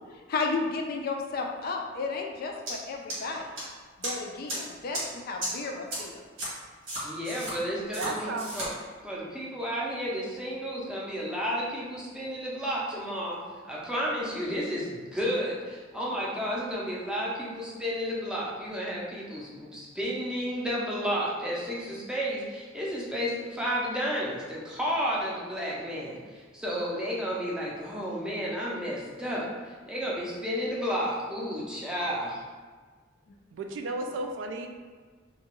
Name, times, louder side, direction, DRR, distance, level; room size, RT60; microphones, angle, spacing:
voice 1, 0.1-3.5 4.0-6.2, left 4 dB, 50° left, 2 dB, 0.3 m, -33 dB
sound 1, 2.7-2.8 3.1-3.6 4.0-4.1 4.5-4.6 4.9-5.0 5.4-5.5 5.9-6.0 6.4-6.5 6.9-7.5 7.9-8.1 8.4-8.7, right 1 dB, 90° right, 1.2 m, -33 dB
voice 2, 7.0-8.7 9.0-13.4 13.7-32.4, equal, 5° right, -6 dB, 0.5 m, -32 dB
voice 3, 8.0-8.5 33.5-34.7, right 2 dB, 65° right, 4 dB, 0.3 m, -33 dB
2.8 x 2.2 x 2.9 m, 1.5 s
head